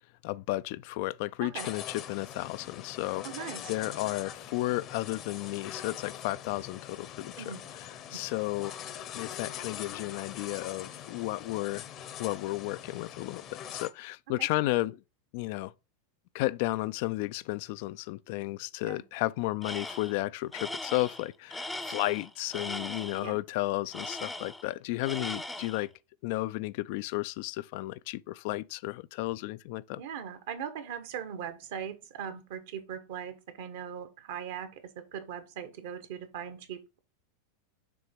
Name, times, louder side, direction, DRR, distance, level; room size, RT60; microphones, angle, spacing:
voice 1, 0.2-3.3 3.7-8.7 9.1-11.9 12.2-15.0 15.3-15.7 16.3-25.9 26.2-30.0, left 18 dB, 55° left, 0.3 m, -33 dB
sound 1, 1.6-13.9, left 10 dB, 40° left, 0.8 m, -43 dB
voice 2, 3.2-3.7 7.4-7.6 14.4-14.5 18.8-19.0 23.2-23.4 30.0-37.0, right 8 dB, 60° right, 1.1 m, -40 dB
Tools, 19.6-20.2 20.5-23.3 23.9-24.7 25.0-25.9, left 2 dB, 5° left, 0.6 m, -39 dB
6.8 x 3.5 x 5.0 m
figure-of-eight pair, 90°, 0 cm